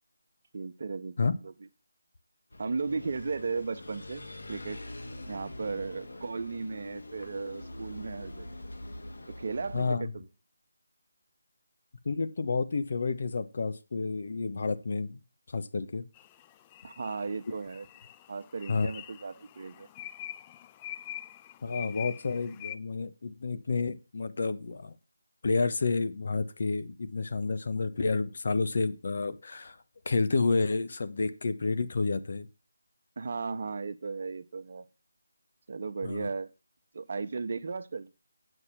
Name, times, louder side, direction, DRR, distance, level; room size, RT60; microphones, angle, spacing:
voice 1, 0.5-1.5 2.6-4.8 5.2-8.5 9.4-10.3 16.8-17.9 18.3-19.9 33.2-34.8 35.7-36.5 36.9-38.1, right 4 dB, 50° right, 1.0 m, -35 dB
sound 1, 2.5-9.9, left 1 dB, 75° left, 2.1 m, -44 dB
voice 2, 9.7-10.1 12.0-15.2 15.5-16.1 18.7-18.9 21.6-24.9 25.4-29.8 30.0-32.5 36.0-36.3, left 4 dB, 55° left, 1.1 m, -30 dB
sound 2, 16.2-22.7, left 12 dB, 20° left, 0.4 m, -45 dB
9.0 x 6.3 x 5.8 m
figure-of-eight pair, 160°, 0 cm